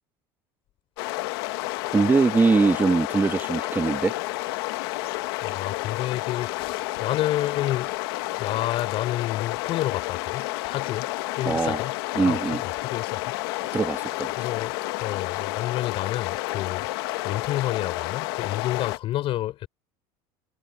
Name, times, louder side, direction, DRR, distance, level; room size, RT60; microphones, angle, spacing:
sound 1, 1.0-19.0, left 20 dB, 80° left, 1.4 m, -30 dB
voice 1, 1.9-4.1 11.4-11.8 12.1-12.6 13.7-14.3, right 4 dB, 15° right, 1.5 m, -22 dB
voice 2, 5.4-7.9 8.4-11.1 11.4-13.3 14.4-16.9 17.2-19.7, left 14 dB, 45° left, 4.5 m, -30 dB
cardioid pair, 140°, 13 cm